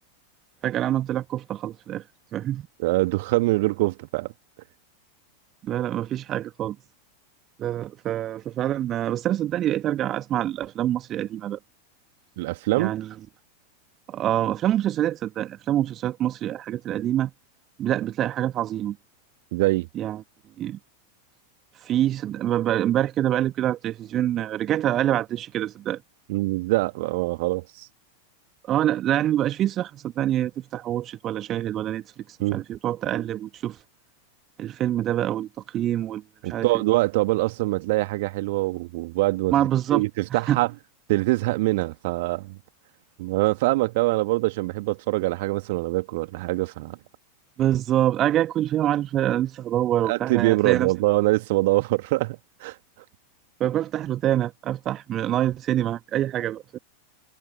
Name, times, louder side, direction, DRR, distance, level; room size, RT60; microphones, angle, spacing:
voice 1, 0.6-2.0 2.3-2.7 5.6-6.8 7.6-11.6 12.8-13.1 14.1-17.3 17.8-19.0 19.9-20.2 20.6-20.8 21.7-26.0 28.7-33.8 34.6-36.8 39.5-40.0 40.3-40.6 47.6-50.9 53.6-56.8, right 12 dB, 30° right, 1.8 m, -26 dB
voice 2, 2.8-4.3 12.4-12.9 19.5-19.9 26.3-27.9 32.4-32.6 36.4-39.5 39.9-40.7 41.1-42.6 43.2-47.0 50.0-52.8, right 21 dB, 50° right, 2.3 m, -24 dB
figure-of-eight pair, 90°, 0 cm